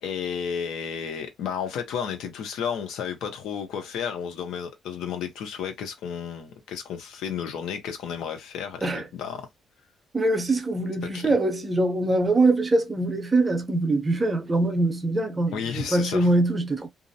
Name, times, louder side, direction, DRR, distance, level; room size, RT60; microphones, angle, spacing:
voice 1, 0.0-9.5 11.1-11.3 15.5-16.3, left 7 dB, 85° left, 0.7 m, -32 dB
voice 2, 10.1-16.9, right 2 dB, 25° right, 0.6 m, -23 dB
2.5 x 2.0 x 2.7 m
cardioid pair, 90°, 0 cm